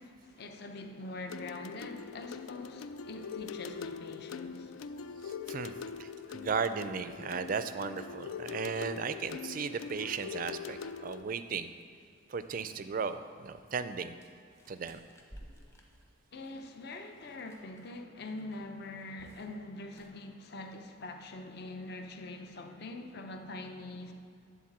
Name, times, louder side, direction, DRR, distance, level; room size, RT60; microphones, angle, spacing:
voice 1, 0.0-4.7 16.3-24.1, left 2 dB, 50° left, 4 dB, 0.7 m, -44 dB
sound 1, 1.3-11.2, left 6 dB, 80° left, 0.3 m, -42 dB
voice 2, 5.2-5.7 6.0-11.7 12.3-14.1 14.7-15.0, right 5 dB, 40° right, 11 dB, 0.4 m, -36 dB
sound 2, 14.2-18.0 18.2-18.6 18.8-19.5 19.8-20.1, equal, 15° left, 0.9 m, -55 dB
10.5 x 4.0 x 7.3 m, 2.4 s
head